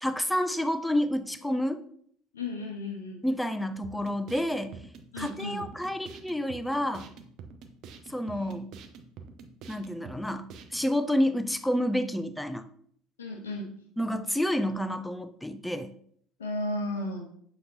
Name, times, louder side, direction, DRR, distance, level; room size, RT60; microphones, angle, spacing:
voice 1, 0.0-1.8 3.2-4.8 5.2-7.1 8.1-8.7 9.7-12.6 14.0-15.9, equal, 5° left, 11 dB, 0.4 m, -29 dB
voice 2, 2.3-3.2 5.1-5.6 13.2-13.7 16.4-17.3, left 1 dB, 75° left, 1 dB, 0.6 m, -34 dB
sound 1, 3.8-10.9, right 5 dB, 50° right, 0.5 m, -47 dB
6.4 x 2.9 x 2.6 m, 0.62 s
figure-of-eight pair, 60°, 0 cm